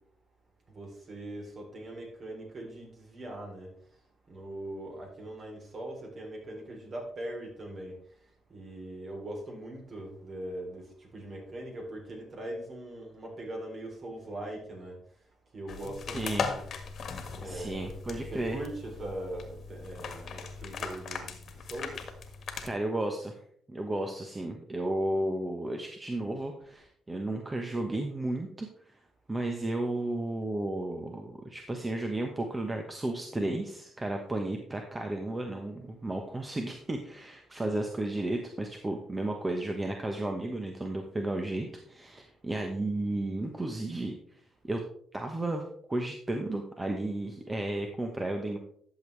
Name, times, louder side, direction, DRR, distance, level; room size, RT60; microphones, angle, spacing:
voice 1, 0.7-3.7 4.3-7.9 8.5-10.8 11.1-15.0 15.5-16.7 17.4-17.9 18.3-21.3 21.7-22.0, right 1 dB, 45° right, 0 dB, 3.6 m, -41 dB
sound 1, 15.7-22.7, left 5 dB, 60° left, 1.6 m, -39 dB
voice 2, 16.1-16.5 17.4-18.6 22.6-23.4 23.7-29.0 29.3-44.2 44.7-44.8 45.1-45.6 45.9-48.6, right 1 dB, 20° right, 3 dB, 1.2 m, -33 dB
12.0 x 7.1 x 3.3 m, 0.62 s
cardioid pair, 90°, 0 cm